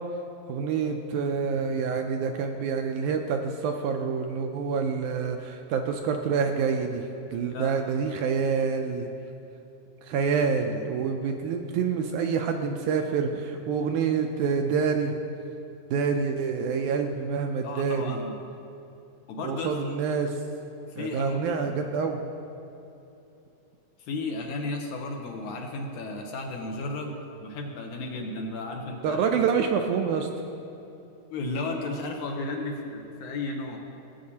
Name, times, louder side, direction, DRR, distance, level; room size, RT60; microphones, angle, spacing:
voice 1, 0.5-7.0 7.3-9.1 10.0-15.1 15.9-18.2 19.4-20.3 21.0-22.2 29.0-30.3, right 6 dB, 80° right, 4 dB, 1.8 m, -27 dB
voice 2, 17.6-18.4 19.3-20.0 20.9-21.7 24.1-27.2 27.4-29.4 31.3-33.8, left 2 dB, 70° left, 2 dB, 2.1 m, -34 dB
18.0 x 8.3 x 2.8 m, 2.9 s
omnidirectional pair, 3.9 m